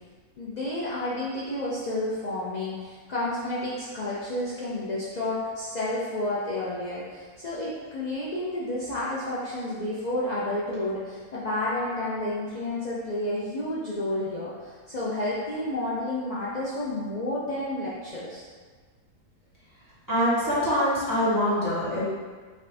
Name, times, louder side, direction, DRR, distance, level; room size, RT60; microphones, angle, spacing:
voice 1, 0.4-18.5, left 1 dB, 75° left, -8 dB, 0.4 m, -30 dB
voice 2, 20.1-22.0, equal, 15° right, -11 dB, 1.4 m, -24 dB
5.3 x 2.6 x 3.4 m, 1.5 s
omnidirectional pair, 1.7 m